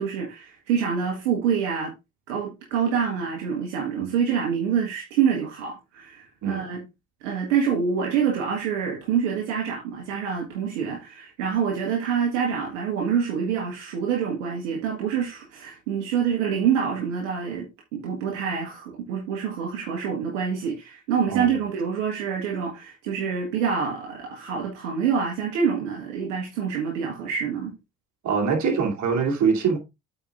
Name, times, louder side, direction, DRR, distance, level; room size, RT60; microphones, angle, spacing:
voice 1, 0.0-1.9 2.3-6.8 7.2-27.7, right 7 dB, 75° right, 1.7 m, -26 dB
voice 2, 28.2-29.8, right 5 dB, 50° right, 2.7 m, -24 dB
8.6 x 4.9 x 3.6 m
figure-of-eight pair, 50°, 37 cm